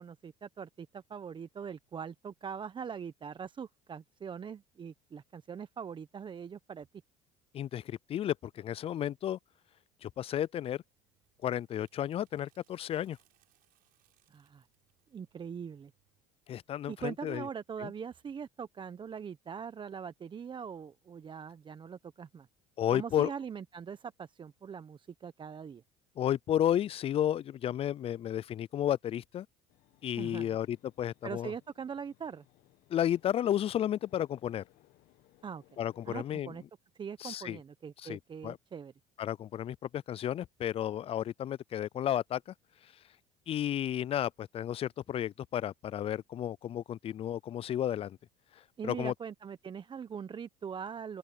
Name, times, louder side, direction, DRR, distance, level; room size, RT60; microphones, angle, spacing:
voice 1, 0.0-6.9 14.3-14.7 15.1-15.9 16.9-22.5 22.9-25.8 30.2-30.6 31.2-32.4 35.4-35.8 36.1-36.6 36.9-38.9 48.8-51.2, right 7 dB, 30° right, 0.9 m, -42 dB
voice 2, 7.5-9.4 10.0-10.8 11.4-13.2 16.5-17.4 17.8-17.9 22.8-23.3 26.2-29.5 30.0-31.5 32.9-34.6 35.8-36.5 37.2-37.6 38.0-38.6 39.2-42.5 43.5-48.2 48.8-49.1, left 11 dB, 40° left, 0.4 m, -32 dB
sound 1, 10.8-16.3, right 19 dB, 70° right, 7.8 m, -74 dB
sound 2, 29.7-36.5, left 17 dB, 65° left, 1.7 m, -65 dB
open air
supercardioid pair, 85°, 16 cm